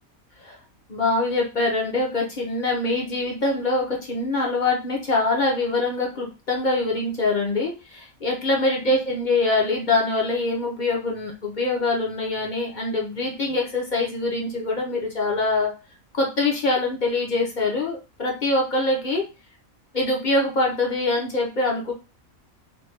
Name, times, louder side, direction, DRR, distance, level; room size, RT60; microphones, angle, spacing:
voice 1, 0.9-15.7 16.1-19.2 19.9-21.9, left 2 dB, 45° left, -1 dB, 0.7 m, -24 dB
3.4 x 2.2 x 3.2 m, 0.30 s
omnidirectional pair, 1.4 m